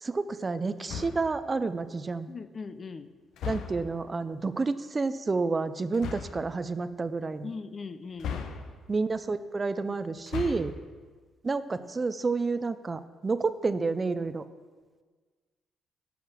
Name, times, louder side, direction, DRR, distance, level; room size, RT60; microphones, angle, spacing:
voice 1, 0.0-2.3 3.5-7.5 8.9-10.7 11.4-14.4, right 4 dB, 30° right, 13 dB, 0.5 m, -30 dB
sound 1, 0.8-1.4 3.4-4.0 5.9-6.5 8.2-9.0 10.2-10.9, left 6 dB, 80° left, 1.0 m, -37 dB
voice 2, 2.3-3.1 7.4-8.4, left 4 dB, 40° left, 12 dB, 0.6 m, -39 dB
12.0 x 5.9 x 7.3 m, 1.5 s
cardioid pair, 90°, 0 cm